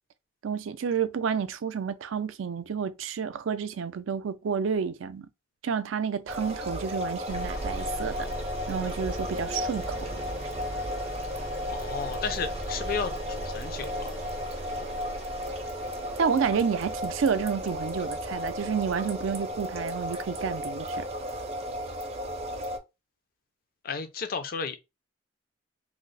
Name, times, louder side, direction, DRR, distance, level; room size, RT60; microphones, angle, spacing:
voice 1, 0.4-5.3 5.6-8.3 8.7-10.1 16.2-21.1, right 6 dB, 85° right, 0.4 m, -30 dB
sound 1, 6.3-22.8, equal, 30° right, 0.5 m, -34 dB
sound 2, 7.3-21.2, equal, 90° left, 1.2 m, -41 dB
voice 2, 11.7-14.1 23.8-24.8, left 5 dB, 50° left, 0.4 m, -33 dB
3.0 x 2.0 x 3.8 m
head